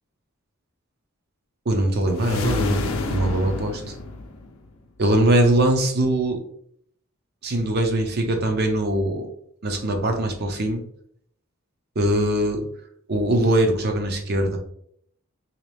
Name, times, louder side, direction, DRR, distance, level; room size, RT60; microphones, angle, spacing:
voice 1, 1.7-3.8 5.0-6.4 7.4-9.3 9.6-10.8 12.0-12.6 13.1-14.6, right 1 dB, 50° right, 4 dB, 0.6 m, -22 dB
sound 1, 2.1-4.7, left 3 dB, 75° left, 0.5 m, -28 dB
3.1 x 2.8 x 3.3 m, 0.69 s
head